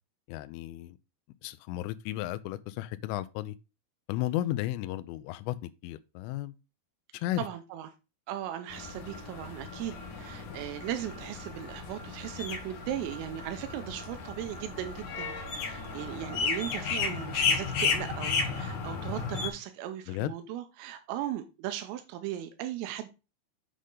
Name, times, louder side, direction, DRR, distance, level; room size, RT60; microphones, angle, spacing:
voice 1, 0.3-1.0 1.4-3.6 4.1-6.5 7.1-7.5 20.1-20.3, left 14 dB, 85° left, 3.1 m, -34 dB
voice 2, 7.4-7.9 8.3-23.1, right 12 dB, 85° right, 3.4 m, -37 dB
sound 1, 8.7-19.5, left 5 dB, 60° left, 2.3 m, -34 dB
8.3 x 6.4 x 3.8 m
omnidirectional pair, 5.8 m